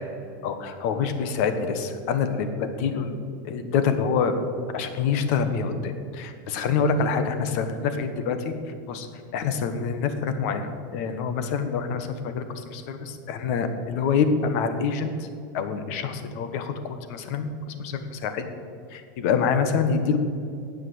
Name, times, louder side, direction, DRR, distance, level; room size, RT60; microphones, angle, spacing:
voice 1, 0.4-3.2 3.4-4.3 4.7-8.5 8.9-9.1 9.3-15.3 15.5-18.5 18.9-20.2, left 6 dB, 50° left, 9 dB, 1.2 m, -26 dB
9.7 x 7.8 x 7.8 m, 2.4 s
supercardioid pair, 165°, 10 cm